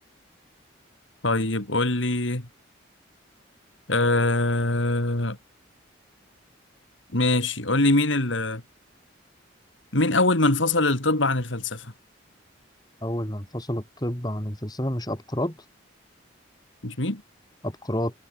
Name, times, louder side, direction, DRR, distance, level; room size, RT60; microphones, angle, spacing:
voice 1, 1.2-2.5 3.9-5.4 7.1-8.6 9.9-11.9 16.8-17.2, left 2 dB, 75° left, 3.2 m, -23 dB
voice 2, 13.0-15.6 17.6-18.1, equal, 20° left, 4.1 m, -29 dB
head